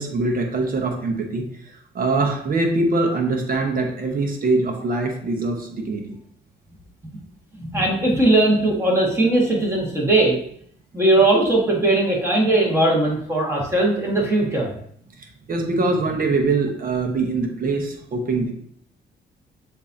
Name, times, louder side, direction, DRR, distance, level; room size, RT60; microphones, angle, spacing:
voice 1, 0.0-1.4 1.9-6.2 15.5-18.5, right 3 dB, 45° right, 2 dB, 1.0 m, -23 dB
voice 2, 7.6-10.4 10.9-14.7, right 2 dB, 15° right, -3 dB, 1.7 m, -19 dB
7.0 x 2.8 x 2.7 m, 0.65 s
cardioid pair, 90°, 20 cm